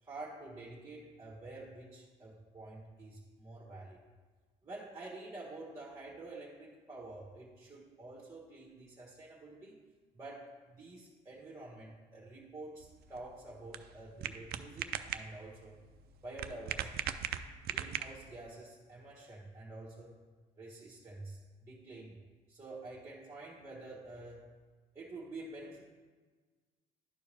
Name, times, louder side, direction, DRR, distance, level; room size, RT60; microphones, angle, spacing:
voice 1, 0.0-4.0 4.6-9.8 10.1-15.8 16.2-17.0 17.6-20.2 20.6-22.2 22.5-24.5 24.9-25.8, right 2 dB, 20° right, -4 dB, 1.3 m, -48 dB
sound 1, 12.8-18.4, right 10 dB, 65° right, 0.4 m, -40 dB
11.5 x 4.6 x 3.4 m, 1.4 s
cardioid pair, 110°, 17 cm